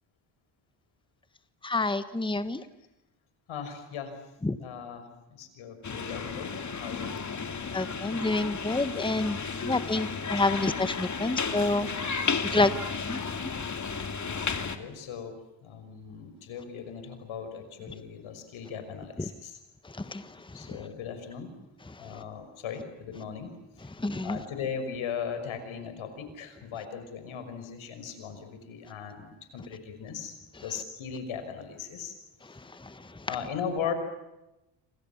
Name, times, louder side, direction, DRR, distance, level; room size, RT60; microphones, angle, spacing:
voice 1, 1.6-2.6 4.4-4.6 7.7-9.4 9.6-11.9 12.5-12.7 13.1-13.2 19.2-19.3 19.8-20.9 21.9-22.2 23.8-24.4 30.5-30.6 32.4-33.3, left 2 dB, 10° left, 12 dB, 1.4 m, -29 dB
voice 2, 3.5-4.2 4.6-6.5 6.8-7.1 14.6-19.6 20.5-21.5 22.0-23.5 23.8-23.9 24.2-32.1 33.3-33.9, left 7 dB, 80° left, 8 dB, 6.0 m, -38 dB
sound 1, 5.8-14.8, left 5 dB, 35° left, 2.8 m, -33 dB
28.0 x 26.5 x 7.3 m, 0.95 s
cardioid pair, 85°, 47 cm